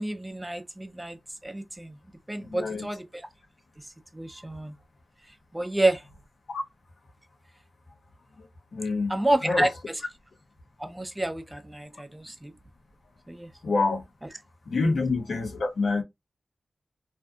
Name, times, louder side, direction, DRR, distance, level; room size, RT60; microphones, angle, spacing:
voice 1, 0.0-2.0 2.3-3.3 4.1-4.7 5.5-6.0 9.1-10.0 10.8-12.5 13.3-13.5 14.8-14.9, right 1 dB, 15° right, 0.5 m, -29 dB
voice 2, 2.4-2.9 8.7-9.7 13.6-14.0 14.7-16.0, left 3 dB, 80° left, 0.7 m, -27 dB
2.6 x 2.5 x 2.3 m
cardioid pair, 55°, 0 cm